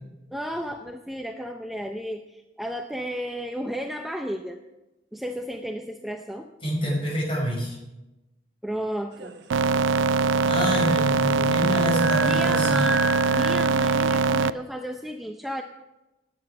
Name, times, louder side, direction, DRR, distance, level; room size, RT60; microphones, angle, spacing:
voice 1, 0.3-4.6 5.1-6.5 8.6-9.3 12.2-15.6, equal, ahead, 3 dB, 0.6 m, -33 dB
voice 2, 6.6-7.8 10.4-12.9, equal, 30° left, -1 dB, 5.5 m, -27 dB
sound 1, 9.1-14.2, right 2 dB, 60° right, 1.2 m, -35 dB
sound 2, 9.5-14.5, right 4 dB, 90° right, 0.4 m, -22 dB
18.5 x 8.6 x 5.8 m, 0.99 s
head